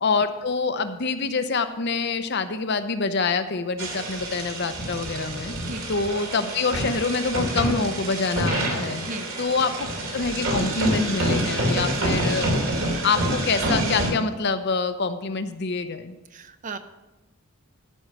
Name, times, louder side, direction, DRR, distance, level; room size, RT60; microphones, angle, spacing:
voice 1, 0.0-5.5 5.9-9.1 9.4-9.7 10.1-12.5 13.0-16.1, left 4 dB, 50° left, 10 dB, 0.7 m, -26 dB
sound 1, 3.8-14.1, right 1 dB, 60° right, 2.7 m, -27 dB
voice 2, 16.3-16.8, right 2 dB, 35° right, 10 dB, 0.6 m, -35 dB
13.5 x 5.5 x 6.0 m, 1.0 s
head